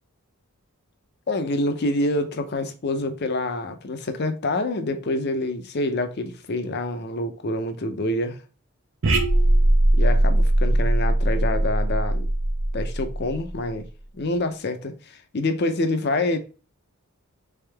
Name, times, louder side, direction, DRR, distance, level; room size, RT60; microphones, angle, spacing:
voice 1, 1.3-8.4 10.0-12.3 12.7-13.9 14.1-16.4, left 2 dB, 50° left, 0.6 m, -26 dB
sound 1, 9.0-13.7, right 1 dB, 60° right, 0.7 m, -20 dB
3.7 x 3.5 x 3.3 m
head